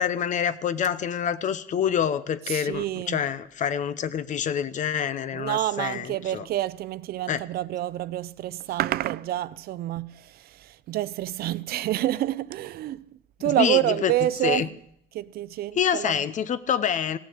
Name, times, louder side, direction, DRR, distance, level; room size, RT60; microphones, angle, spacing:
voice 1, 0.0-6.5 7.3-7.4 13.4-14.1 14.4-14.7 15.7-17.2, left 8 dB, 45° left, 0.8 m, -26 dB
voice 2, 2.5-3.2 5.3-14.7 15.1-16.2, right 14 dB, 65° right, 0.5 m, -28 dB
16.0 x 7.2 x 8.4 m
cardioid pair, 110°, 17 cm